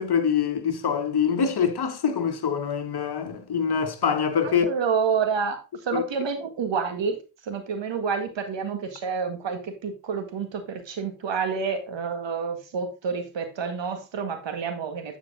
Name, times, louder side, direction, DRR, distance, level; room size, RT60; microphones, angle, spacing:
voice 1, 0.0-4.7 5.9-6.0, left 7 dB, 50° left, 1.4 m, -24 dB
voice 2, 4.4-7.2 7.4-15.2, right 6 dB, 60° right, 2.0 m, -29 dB
9.4 x 5.0 x 3.8 m
supercardioid pair, 55°, 48 cm